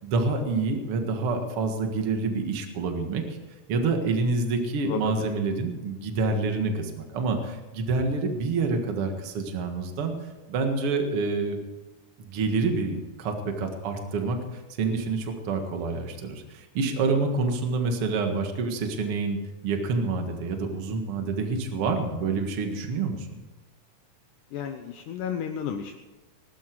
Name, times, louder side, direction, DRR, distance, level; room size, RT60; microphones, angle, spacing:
voice 1, 0.0-3.2 3.7-10.1 10.5-11.6 12.2-23.4, right 3 dB, 50° right, 4 dB, 2.3 m, -27 dB
voice 2, 4.9-5.3 24.5-26.0, left 8 dB, 75° left, 5 dB, 2.3 m, -32 dB
20.5 x 12.5 x 4.7 m, 1.2 s
omnidirectional pair, 3.8 m